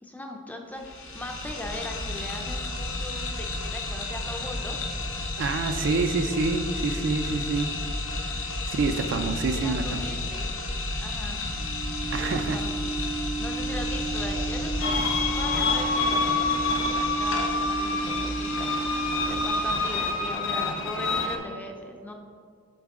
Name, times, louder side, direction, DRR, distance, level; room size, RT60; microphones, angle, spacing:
voice 1, 0.0-4.8 8.5-8.6 8.9-10.5 11.0-11.4 12.2-12.8 13.4-22.1, left 1 dB, 10° left, 3 dB, 0.4 m, -39 dB
sound 1, 0.7-20.4, left 2 dB, 85° left, 1.0 m, -32 dB
voice 2, 5.4-7.7 8.7-10.2 12.1-12.6, right 3 dB, 60° right, 8 dB, 0.4 m, -27 dB
sound 2, 11.4-19.5, right 4 dB, 85° right, 1.3 m, -33 dB
sound 3, 14.8-21.4, left 3 dB, 65° left, 0.5 m, -27 dB
7.1 x 3.7 x 3.6 m, 2.1 s
head